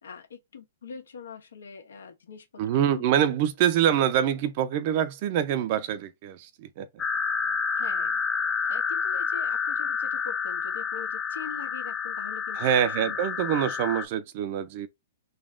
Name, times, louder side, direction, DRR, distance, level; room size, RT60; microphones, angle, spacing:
voice 1, 0.0-3.0 7.7-8.2 8.6-13.5, left 6 dB, 90° left, 1.4 m, -43 dB
voice 2, 2.6-7.0 12.5-14.9, right 10 dB, 40° right, 0.6 m, -25 dB
sound 1, 7.0-14.1, left 6 dB, 15° left, 0.5 m, -29 dB
3.9 x 2.3 x 3.7 m
hypercardioid pair, 150°, 0 cm